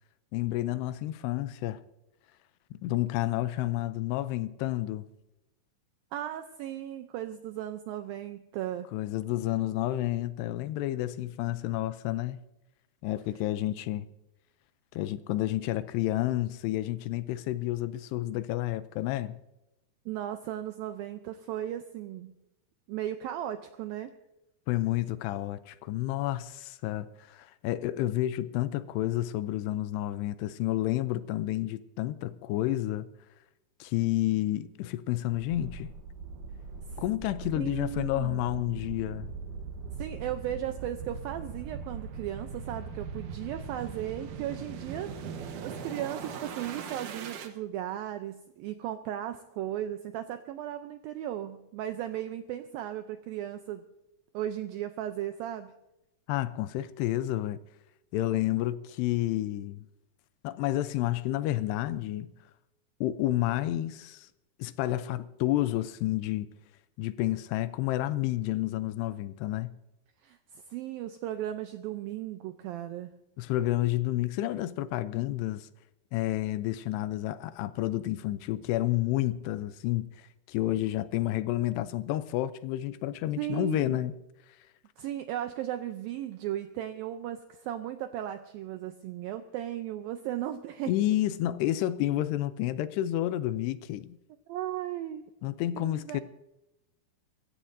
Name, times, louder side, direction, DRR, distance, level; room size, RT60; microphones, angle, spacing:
voice 1, 0.3-1.8 2.7-5.1 8.9-12.4 13.0-14.1 14.9-19.4 24.7-33.1 33.8-35.9 37.0-39.3 56.3-57.6 58.1-59.9 60.4-62.3 63.0-64.3 64.6-66.5 67.0-69.7 73.4-75.7 76.1-84.1 90.9-94.2 95.4-96.2, left 15 dB, 80° left, 2.6 m, -30 dB
voice 2, 6.1-8.9 20.1-22.3 22.9-24.1 36.9-37.0 37.6-38.4 40.0-45.1 45.6-53.9 54.3-55.7 70.2-73.1 83.4-84.0 85.0-90.9 94.5-95.2 95.7-96.2, right 12 dB, 85° right, 2.1 m, -36 dB
sound 1, 35.3-47.5, right 5 dB, 65° right, 2.1 m, -40 dB
24.5 x 14.5 x 2.7 m
omnidirectional pair, 4.9 m